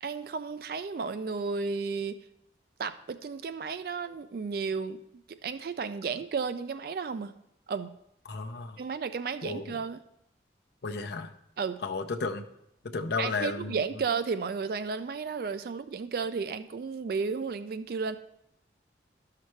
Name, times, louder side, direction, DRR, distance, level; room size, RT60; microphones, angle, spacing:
voice 1, 0.0-2.2 2.8-5.0 5.3-7.3 7.7-7.9 8.8-10.0 11.6-11.8 13.2-18.2, right 5 dB, 55° right, 12 dB, 0.3 m, -33 dB
voice 2, 8.3-8.8 9.4-9.8 10.8-11.3 11.8-12.4 12.9-14.0, left 4 dB, 65° left, 6 dB, 0.6 m, -33 dB
12.0 x 5.7 x 3.2 m, 0.79 s
head